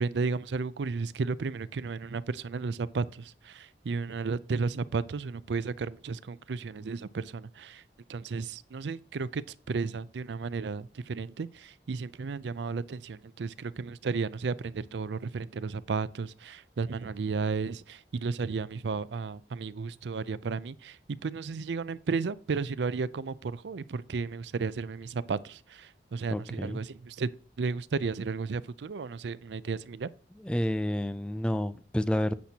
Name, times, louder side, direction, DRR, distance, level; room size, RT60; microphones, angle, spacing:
voice 1, 0.0-7.8 8.1-11.5 11.9-25.9 26.1-27.3 27.6-30.1, right 4 dB, 90° right, 0.5 m, -33 dB
voice 2, 26.3-26.8 30.3-32.3, left 1 dB, 5° left, 0.4 m, -30 dB
10.5 x 8.4 x 2.8 m
head